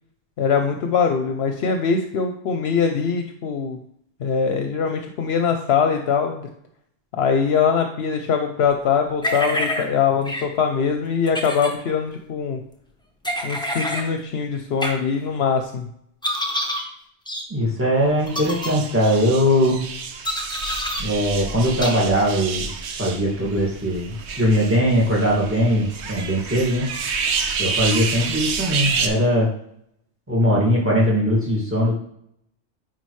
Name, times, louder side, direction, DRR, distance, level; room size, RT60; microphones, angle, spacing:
voice 1, 0.4-3.8 4.2-6.5 7.1-12.6 13.4-15.9, left 6 dB, 70° left, 5 dB, 0.9 m, -22 dB
sound 1, 9.2-9.8 10.3-10.4 11.3-11.7 13.2-14.1 14.8-14.9 16.2-16.8 17.3-17.4 18.3-18.7 20.2-21.0 21.8-21.9, left 1 dB, 5° left, 0.9 m, -26 dB
voice 2, 17.5-19.8 21.0-22.7 23.0-26.9 27.6-29.5 30.3-32.0, equal, 10° right, -5 dB, 2.0 m, -20 dB
sound 2, 18.2-29.1, right 5 dB, 80° right, 1.0 m, -29 dB
9.6 x 4.3 x 3.2 m, 0.71 s
omnidirectional pair, 1.1 m